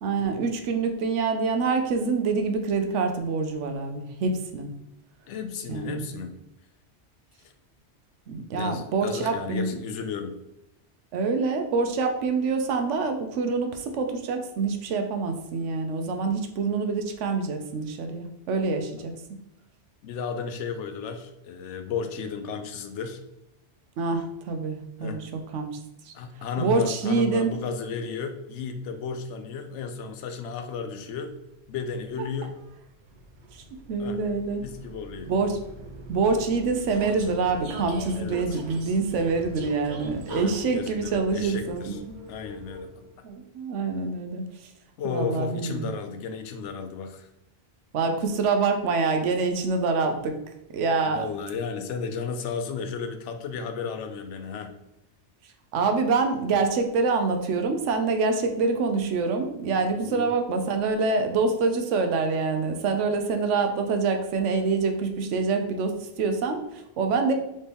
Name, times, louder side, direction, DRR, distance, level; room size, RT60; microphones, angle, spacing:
voice 1, 0.0-4.7 5.7-6.1 8.3-9.8 11.1-19.1 24.0-25.7 26.0-26.1 26.6-27.5 33.5-34.7 35.3-35.6 36.1-42.2 43.2-44.7 45.0-45.9 47.9-50.4 50.7-51.3 55.7-67.3, right 4 dB, 85° right, 5 dB, 1.0 m, -26 dB
voice 2, 5.3-6.4 7.4-7.5 8.5-10.4 19.0-19.1 20.0-23.2 25.0-25.2 26.1-31.3 31.7-32.5 34.0-34.2 34.6-35.3 38.2-38.6 40.3-42.0 42.3-43.1 45.0-47.3 51.1-54.7 60.0-60.3, left 5 dB, 80° left, 7 dB, 0.9 m, -34 dB
Vehicle, 31.5-43.1, right 3 dB, 50° right, 0.6 m, -42 dB
4.2 x 3.1 x 3.4 m, 0.87 s
omnidirectional pair, 1.2 m